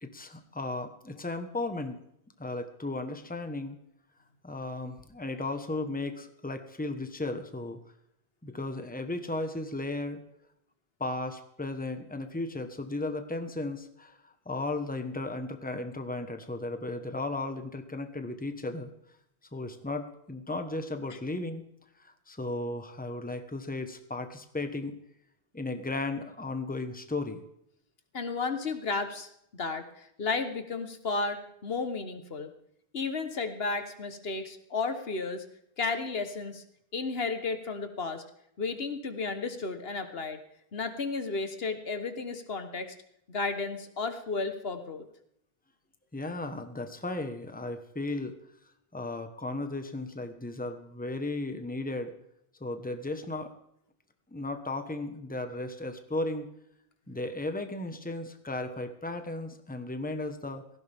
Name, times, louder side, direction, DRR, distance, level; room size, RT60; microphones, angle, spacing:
voice 1, 0.0-2.0 2.4-3.8 4.4-7.8 8.4-10.2 11.0-18.9 19.5-21.6 22.0-24.9 25.5-27.4 46.1-48.3 48.9-52.1 52.6-53.5 54.3-56.5 57.1-60.6, left 2 dB, 10° left, 7 dB, 1.2 m, -35 dB
voice 2, 28.1-32.5 32.9-35.4 35.8-36.6 36.9-38.2 38.6-40.4 40.7-42.9 43.3-45.0, left 4 dB, 70° left, 8 dB, 1.5 m, -33 dB
17.5 x 15.5 x 3.6 m, 0.75 s
omnidirectional pair, 1.1 m